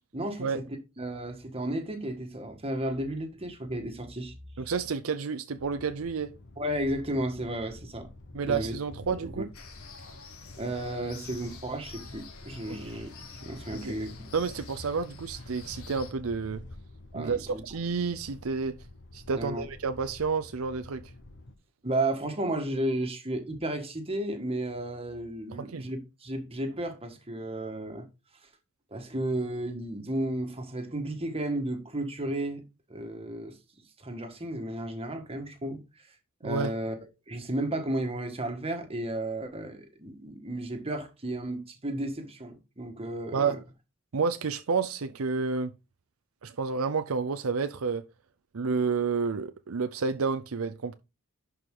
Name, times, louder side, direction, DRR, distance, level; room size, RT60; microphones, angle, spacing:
voice 1, 0.1-0.6 1.0-4.3 6.6-8.1 8.4-8.7 9.2-9.4 10.6-14.1 17.1-17.6 19.4-19.6 21.8-28.1 28.9-32.6 32.9-33.6 34.0-35.8 36.4-37.0 37.3-43.6, right 1 dB, 30° right, 1.6 m, -33 dB
voice 2, 4.6-6.3 8.3-9.5 12.7-12.8 13.8-13.9 14.3-16.6 17.1-18.7 19.1-21.1 25.6-25.9 36.4-36.7 43.3-43.6 44.1-45.7 46.4-48.0 48.5-50.9, right 5 dB, 75° right, 0.6 m, -30 dB
sound 1, 5.6-21.5, left 2 dB, 60° left, 1.1 m, -48 dB
sound 2, 9.5-16.1, left 5 dB, 80° left, 1.9 m, -49 dB
11.0 x 4.7 x 3.7 m
head